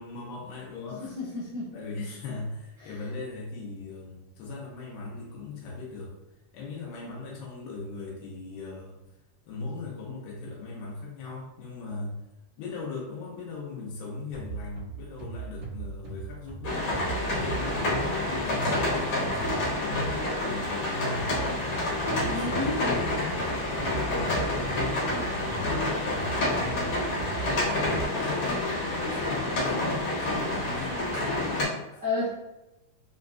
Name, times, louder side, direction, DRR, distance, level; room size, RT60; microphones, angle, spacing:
voice 1, 0.0-1.2 1.7-6.2 6.5-9.0 9.5-12.2 12.6-32.0, left 3 dB, 90° left, -5 dB, 2.5 m, -39 dB
voice 2, 1.2-1.7 22.3-22.8 32.0-32.3, left 3 dB, 75° right, -12 dB, 1.0 m, -30 dB
sound 1, 14.3-20.4 21.2-28.0, right 6 dB, 55° right, 1.5 m, -39 dB
sound 2, 16.6-31.6, left 1 dB, 60° left, 1.6 m, -28 dB
5.7 x 2.5 x 2.2 m, 0.94 s
omnidirectional pair, 3.9 m